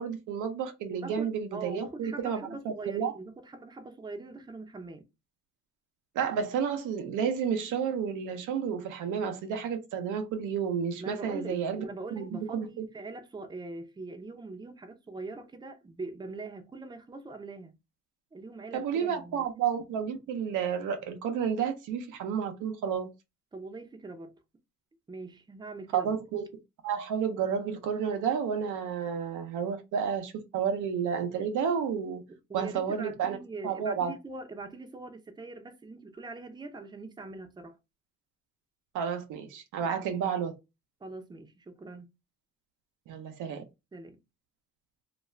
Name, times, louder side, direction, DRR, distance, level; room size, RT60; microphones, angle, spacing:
voice 1, 0.0-3.1 6.2-11.8 12.2-12.9 18.7-23.1 25.9-26.4 26.8-32.2 32.5-33.4 33.6-34.1 38.9-40.5 43.1-43.6, right 7 dB, 85° right, 0.6 m, -31 dB
voice 2, 0.9-5.1 11.0-17.7 18.3-19.5 23.5-24.3 25.1-26.1 32.3-37.8 39.8-39.9 41.0-42.1 43.9-44.2, right 3 dB, 15° right, 0.6 m, -42 dB
2.4 x 2.2 x 3.1 m
cardioid pair, 90°, 30 cm